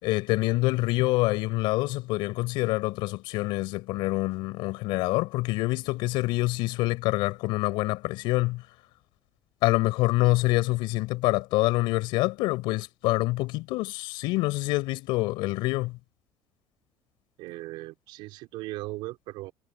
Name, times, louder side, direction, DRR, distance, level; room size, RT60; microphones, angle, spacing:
voice 1, 0.0-8.7 9.6-16.0, left 20 dB, 90° left, 4.8 m, -26 dB
voice 2, 17.4-19.5, right 19 dB, 85° right, 4.5 m, -38 dB
cardioid pair, 160°, 8 cm